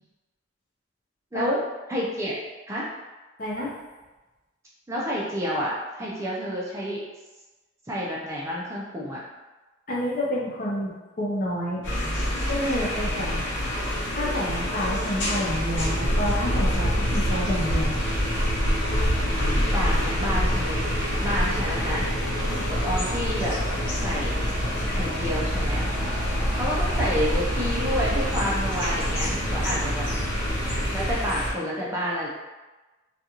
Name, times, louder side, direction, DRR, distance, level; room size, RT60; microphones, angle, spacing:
voice 1, 1.9-2.4 2.7-2.9 4.9-7.0 7.9-9.2 13.0-13.5 19.3-22.4 22.7-23.6 24.0-24.5 24.9-25.8 26.5-30.1 30.9-32.3, equal, 15° right, -6 dB, 0.4 m, -29 dB
voice 2, 3.4-3.7 9.9-11.8 12.4-13.4 14.1-18.0, equal, 45° left, -5 dB, 0.6 m, -29 dB
sound 1, 11.8-31.5, equal, 75° left, 0.9 m, -29 dB
sound 2, 15.7-31.1, equal, 80° right, 0.9 m, -28 dB
2.5 x 2.3 x 2.8 m, 1.2 s
head